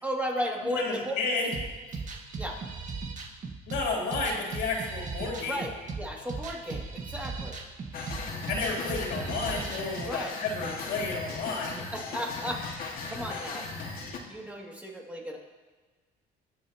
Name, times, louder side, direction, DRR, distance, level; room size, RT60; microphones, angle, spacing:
voice 1, 0.0-1.1 1.4-1.5 2.4-2.5 5.5-5.7 6.0-7.6 10.0-10.3 11.9-12.6 13.1-13.6 14.3-15.4, equal, 10° right, -2 dB, 2.7 m, -34 dB
voice 2, 0.6-1.5 3.7-5.6 8.5-11.8, left 3 dB, 85° left, -3 dB, 3.8 m, -31 dB
sound 1, 1.5-10.1, right 4 dB, 50° right, 1.8 m, -38 dB
sound 2, 7.9-14.2, left 4 dB, 60° left, 2.1 m, -38 dB
22.0 x 9.3 x 3.1 m, 1.3 s
cardioid pair, 110°, 17 cm